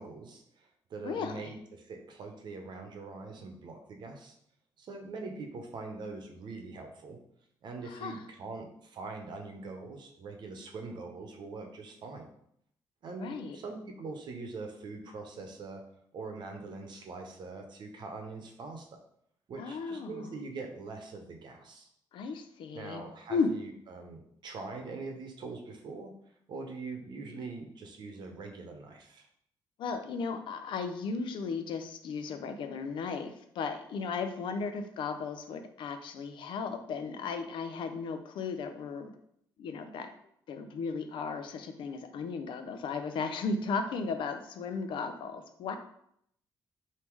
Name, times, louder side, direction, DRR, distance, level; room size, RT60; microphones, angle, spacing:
voice 1, 0.0-4.3 4.8-7.2 7.6-12.3 13.0-15.8 16.1-19.0 19.5-21.9 22.7-26.1 26.5-29.3, right 3 dB, 65° right, 4 dB, 0.8 m, -43 dB
voice 2, 1.0-1.5 7.9-8.2 13.2-13.6 19.6-20.3 22.1-23.0 23.3-23.5 29.8-39.1 39.6-40.1 40.5-45.8, left 4 dB, 75° left, 8 dB, 0.5 m, -35 dB
3.6 x 2.8 x 4.6 m, 0.70 s
cardioid pair, 100°, 8 cm